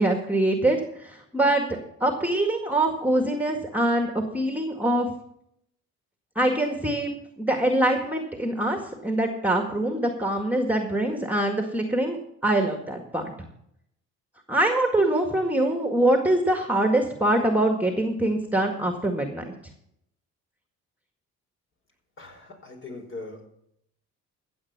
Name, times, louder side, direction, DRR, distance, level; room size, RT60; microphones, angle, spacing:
voice 1, 0.0-1.6 2.0-5.1 6.4-12.2 12.4-13.5 14.5-19.4, right 1 dB, 5° right, 4 dB, 1.8 m, -24 dB
voice 2, 22.2-23.5, left 3 dB, 40° left, 2 dB, 4.8 m, -40 dB
15.0 x 7.8 x 5.9 m, 0.74 s
cardioid pair, 90°, 30 cm